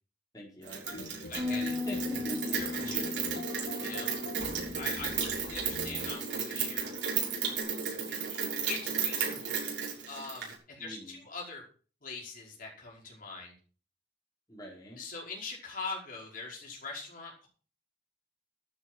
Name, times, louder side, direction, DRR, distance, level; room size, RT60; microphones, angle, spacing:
voice 1, 0.3-2.6 4.5-4.9 10.8-11.2 14.5-15.0, equal, 20° left, -3 dB, 4.8 m, -45 dB
Rain, 0.7-10.5, right 6 dB, 75° right, 6.5 m, -34 dB
sound 1, 0.8-6.1, left 1 dB, 85° left, 4.0 m, -45 dB
voice 2, 1.3-1.7 2.6-3.1 3.8-4.1 4.7-6.9 8.1-8.4 8.7-9.6 10.1-11.6 12.0-13.5 15.0-17.5, left 4 dB, 50° left, -2 dB, 5.4 m, -42 dB
Bass guitar, 1.4-7.6, left 3 dB, 20° right, 3.1 m, -39 dB
12.5 x 9.0 x 6.2 m, 0.40 s
head